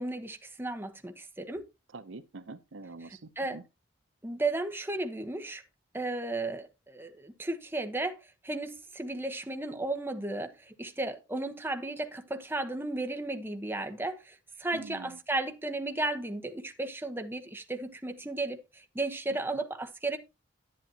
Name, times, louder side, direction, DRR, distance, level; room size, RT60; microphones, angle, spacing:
voice 1, 0.0-1.6 3.0-3.6 4.2-5.6 5.9-8.2 8.4-18.6 18.9-20.2, right 2 dB, 10° right, 1.1 m, -34 dB
voice 2, 1.9-3.6 14.7-15.2, right 3 dB, 75° right, 0.8 m, -45 dB
10.5 x 10.5 x 2.9 m
head